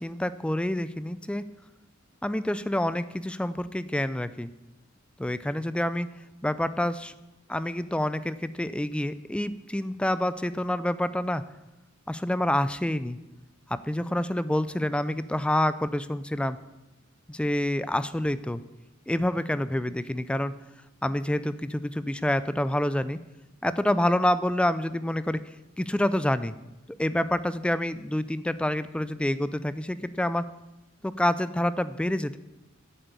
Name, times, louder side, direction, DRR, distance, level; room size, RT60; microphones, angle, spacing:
voice 1, 0.0-1.5 2.2-4.5 5.2-6.1 6.4-7.1 7.5-11.4 12.1-13.2 13.7-16.6 17.3-18.6 19.1-20.5 21.0-23.2 23.6-25.4 25.8-26.5 27.0-30.4 31.0-32.4, left 1 dB, 5° left, 14 dB, 0.3 m, -27 dB
8.0 x 7.8 x 8.2 m, 1.0 s
head